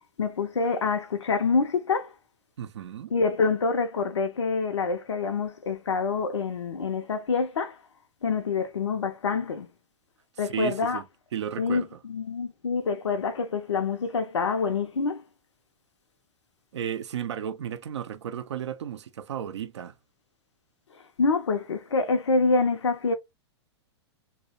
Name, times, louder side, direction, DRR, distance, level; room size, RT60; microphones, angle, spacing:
voice 1, 0.2-2.1 3.1-7.8 8.2-9.7 10.4-11.0 11.6-11.8 12.1-15.2 21.2-23.1, left 4 dB, 85° left, 0.4 m, -26 dB
voice 2, 2.6-3.1 10.4-11.0 11.3-12.0 16.7-19.9, right 9 dB, 75° right, 0.4 m, -34 dB
2.6 x 2.0 x 2.8 m
hypercardioid pair, 105°, 15 cm